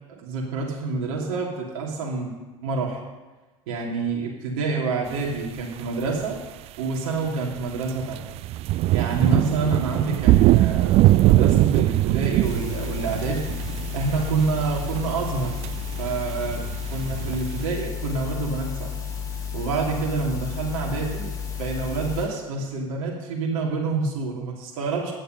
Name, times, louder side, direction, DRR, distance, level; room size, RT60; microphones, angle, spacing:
voice 1, 0.1-2.3 2.6-3.0 3.7-6.4 6.8-8.2 8.9-13.6 13.9-15.6 16.0-18.9 19.5-25.1, right 4 dB, 55° right, -2 dB, 3.2 m, -27 dB
sound 1, 6.1-6.2 7.6-17.6, right 16 dB, 35° right, 0.4 m, -21 dB
sound 2, 12.4-22.3, left 7 dB, 20° left, 3.9 m, -32 dB
17.0 x 10.5 x 5.5 m, 1.2 s
figure-of-eight pair, 75°, 18 cm